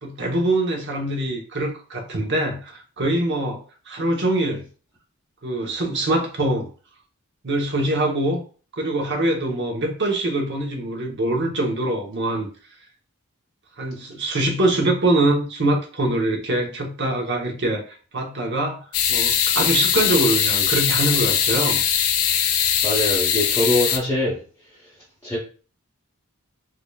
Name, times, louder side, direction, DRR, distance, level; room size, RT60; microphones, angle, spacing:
voice 1, 0.0-4.7 5.4-6.7 7.4-8.4 8.7-12.5 13.8-21.8, right 1 dB, 55° right, 0.9 m, -23 dB
sound 1, 18.9-24.0, left 8 dB, 80° left, 0.5 m, -21 dB
voice 2, 22.8-24.4 25.2-25.4, left 1 dB, 15° left, 0.8 m, -23 dB
3.7 x 3.2 x 2.3 m
head